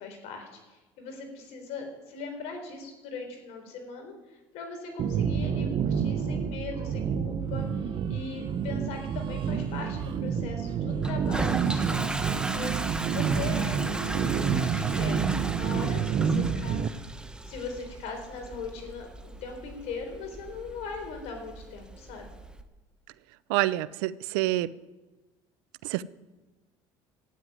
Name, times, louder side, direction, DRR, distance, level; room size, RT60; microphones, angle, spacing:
voice 1, 0.0-16.8 17.4-22.3, left 4 dB, 70° left, 4 dB, 4.0 m, -40 dB
sound 1, 5.0-16.9, right 7 dB, 45° right, 1.0 m, -28 dB
Toilet flush, 11.0-22.6, right 2 dB, 5° right, 1.2 m, -37 dB
voice 2, 23.5-24.7 25.8-26.0, right 17 dB, 85° right, 18 dB, 0.5 m, -27 dB
13.0 x 9.6 x 9.3 m, 1.2 s
supercardioid pair, 105°, 11 cm